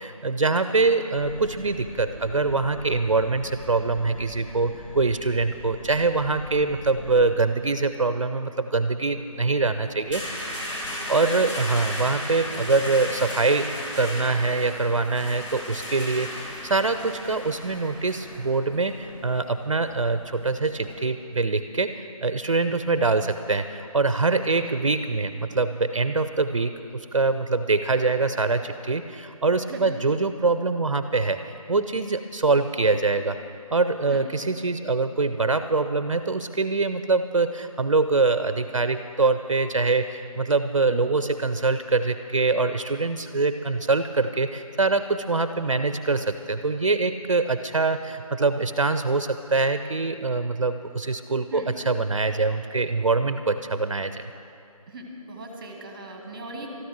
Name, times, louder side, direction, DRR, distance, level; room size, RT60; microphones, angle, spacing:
voice 1, 0.0-10.6 11.1-13.7 13.9-33.4 33.7-54.2, right 3 dB, 55° right, 10 dB, 0.6 m, -24 dB
sound 1, 1.2-7.3, left 1 dB, 20° left, 1.0 m, -41 dB
sound 2, 9.3-20.9, left 1 dB, 55° left, 4.0 m, -36 dB
voice 2, 11.1-11.5 24.4-24.5 29.7-30.0 34.1-34.2 51.5-51.7 54.9-56.7, right 2 dB, 15° right, 3 dB, 1.2 m, -39 dB
13.0 x 12.5 x 6.2 m, 2.6 s
figure-of-eight pair, 165°, 19 cm